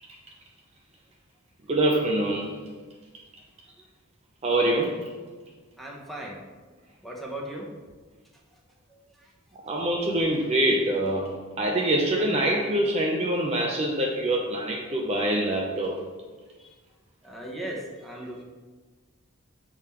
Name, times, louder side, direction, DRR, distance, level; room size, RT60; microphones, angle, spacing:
voice 1, 1.7-2.5 4.4-5.0 9.6-16.0, right 1 dB, 30° right, 0 dB, 0.5 m, -25 dB
voice 2, 5.8-6.4 7.0-7.7 16.6-16.7 17.2-18.4, right 1 dB, ahead, -3 dB, 0.9 m, -37 dB
6.7 x 3.8 x 4.2 m, 1.4 s
head